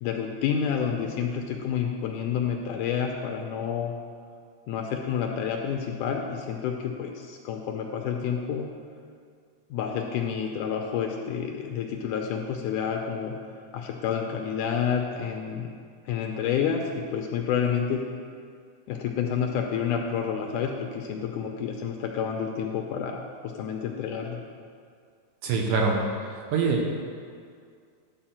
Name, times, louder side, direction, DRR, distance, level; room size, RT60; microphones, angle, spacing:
voice 1, 0.0-3.9 4.7-8.7 9.7-13.4 13.7-15.7 16.1-18.0 18.9-24.4, left 7 dB, 80° left, 2 dB, 2.0 m, -29 dB
voice 2, 25.4-26.0 26.5-27.0, right 4 dB, 70° right, 0 dB, 2.2 m, -24 dB
11.5 x 4.9 x 7.4 m, 2.2 s
omnidirectional pair, 4.1 m